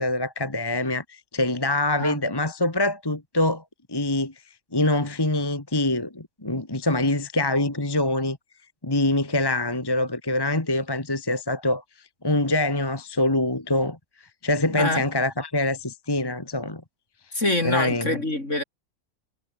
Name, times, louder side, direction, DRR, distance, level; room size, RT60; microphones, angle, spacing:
voice 1, 0.0-3.6 3.9-4.3 4.7-8.4 8.8-11.8 12.2-14.0 14.4-16.8 17.3-17.4 17.6-18.2, left 2 dB, 15° left, 1.7 m, -24 dB
voice 2, 14.7-15.0 17.3-18.6, left 1 dB, 50° left, 7.0 m, -25 dB
omnidirectional pair, 1.6 m